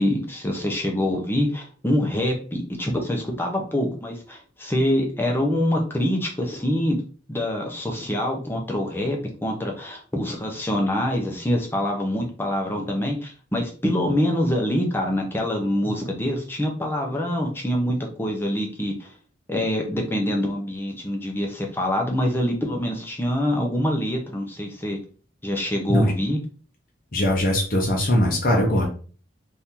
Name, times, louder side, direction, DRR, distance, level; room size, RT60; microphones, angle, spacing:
voice 1, 0.0-19.1 19.5-25.0 25.4-26.4, left 1 dB, 10° left, 0 dB, 0.6 m, -25 dB
voice 2, 27.1-28.9, left 1 dB, 45° left, -1 dB, 0.7 m, -20 dB
2.9 x 2.7 x 3.6 m, 0.39 s
head